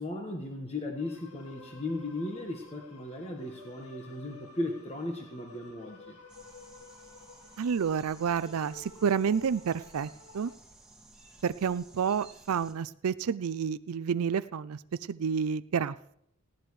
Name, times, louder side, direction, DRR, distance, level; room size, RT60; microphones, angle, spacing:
voice 1, 0.0-6.2, left 2 dB, 30° left, 1 dB, 1.4 m, -36 dB
sound 1, 1.0-10.5, left 3 dB, 85° left, 1.9 m, -53 dB
sound 2, 6.3-12.7, right 2 dB, 5° right, 2.0 m, -55 dB
voice 2, 7.6-10.5 11.4-14.8 15.1-16.2, right 6 dB, 80° right, 15 dB, 0.4 m, -30 dB
19.0 x 16.0 x 3.2 m, 0.73 s
head